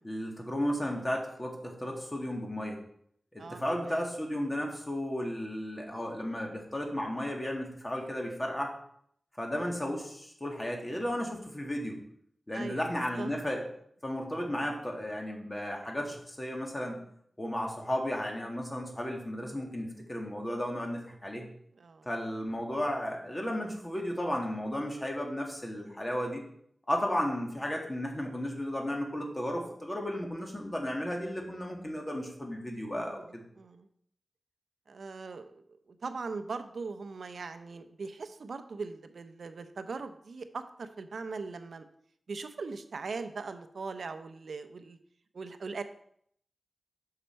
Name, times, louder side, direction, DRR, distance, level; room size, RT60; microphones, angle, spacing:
voice 1, 0.0-2.8 3.3-8.7 9.4-12.0 12.5-13.6 14.0-17.0 17.4-21.5 22.1-26.5 26.9-33.4, equal, 25° left, 1 dB, 1.9 m, -34 dB
voice 2, 3.4-4.1 12.5-12.9 13.2-13.3 16.9-17.0 21.7-22.1 33.0-33.9 34.9-41.9 42.3-45.0 45.3-45.8, right 4 dB, 80° right, 9 dB, 0.6 m, -40 dB
6.2 x 5.7 x 4.5 m, 0.67 s
cardioid pair, 55°, 0 cm